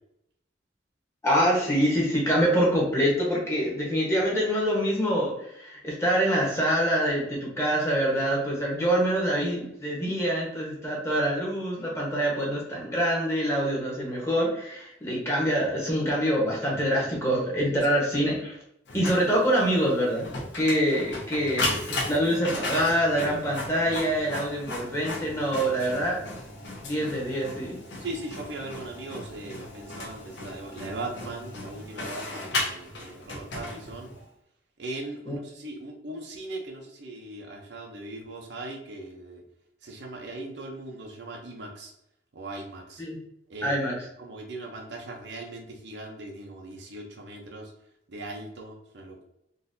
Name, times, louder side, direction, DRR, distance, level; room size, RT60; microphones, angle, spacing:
voice 1, 1.2-18.6 18.9-20.3 20.5-26.2 26.8-27.8 35.3-35.4 43.0-43.2 43.6-43.9, equal, 15° left, -4 dB, 1.0 m, -25 dB
voice 2, 16.6-17.2 25.7-25.9 28.0-34.1 34.8-39.4 39.8-41.9 42.3-43.0 43.5-43.7 44.2-47.7 48.1-49.2, right 2 dB, 70° right, 1 dB, 0.7 m, -39 dB
Printer, 18.9-34.2, left 2 dB, 80° left, 0.9 m, -36 dB
3.9 x 2.6 x 2.6 m, 0.78 s
head